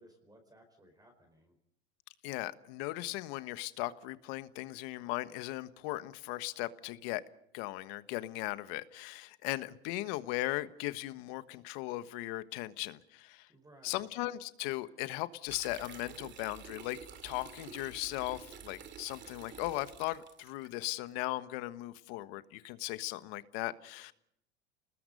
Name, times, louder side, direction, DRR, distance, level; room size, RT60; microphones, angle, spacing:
voice 1, 0.0-1.6 13.5-14.2, right 1 dB, 10° right, 5 dB, 4.9 m, -60 dB
voice 2, 2.2-7.2 7.5-13.5 13.8-17.0 17.2-24.1, left 18 dB, 60° left, 13 dB, 1.4 m, -38 dB
sound 1, 15.5-20.7, right 7 dB, 35° right, 2.6 m, -50 dB
29.5 x 20.0 x 5.4 m, 0.73 s
supercardioid pair, 115°, 33 cm